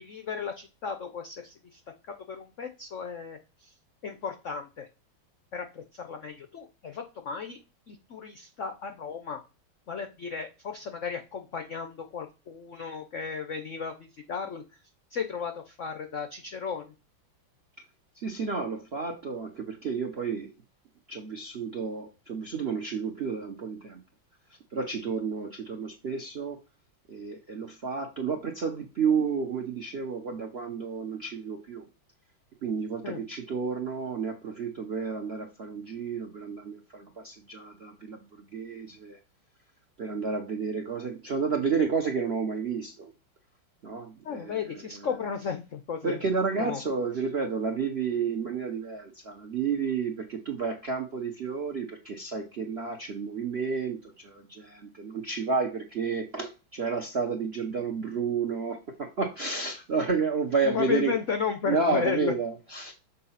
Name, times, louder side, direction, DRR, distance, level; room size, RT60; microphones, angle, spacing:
voice 1, 0.0-1.8 2.1-3.7 4.0-4.9 5.5-7.6 7.9-9.4 9.9-14.6 15.1-16.9 33.0-33.2 44.2-46.2 46.6-46.8 60.6-62.3, left 6 dB, 70° left, 6 dB, 0.7 m, -34 dB
voice 2, 18.1-20.5 21.1-24.0 24.7-26.6 27.1-31.9 32.6-39.2 40.0-43.1 43.8-45.3 46.0-61.2 61.6-62.9, right 5 dB, 60° right, 4 dB, 0.6 m, -31 dB
6.7 x 2.7 x 5.6 m, 0.29 s
omnidirectional pair, 2.3 m